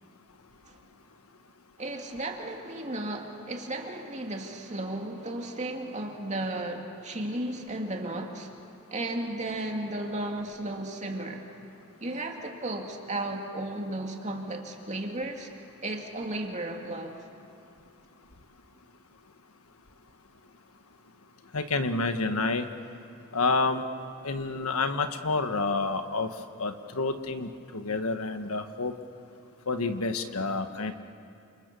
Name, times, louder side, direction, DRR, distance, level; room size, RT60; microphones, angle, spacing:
voice 1, 1.8-8.5 8.9-11.5 12.0-15.5 15.8-17.2, right 1 dB, 35° right, 2 dB, 2.6 m, -34 dB
voice 2, 21.0-22.7 23.2-23.8 24.2-29.0 29.6-30.9, left 3 dB, 85° left, 8 dB, 1.5 m, -30 dB
29.0 x 27.0 x 7.0 m, 2.6 s
head